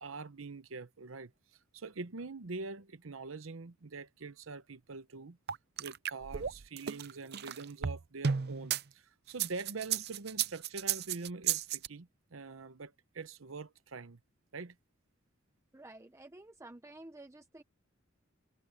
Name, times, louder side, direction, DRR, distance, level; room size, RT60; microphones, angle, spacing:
voice 1, 0.0-1.3 1.7-5.4 5.8-14.2 14.5-14.8, right 3 dB, 90° right, 0.9 m, -44 dB
sound 1, 5.5-8.8 9.3-11.9, right 8 dB, 55° right, 0.6 m, -33 dB
voice 2, 15.7-17.6, right 2 dB, 15° right, 0.7 m, -51 dB
head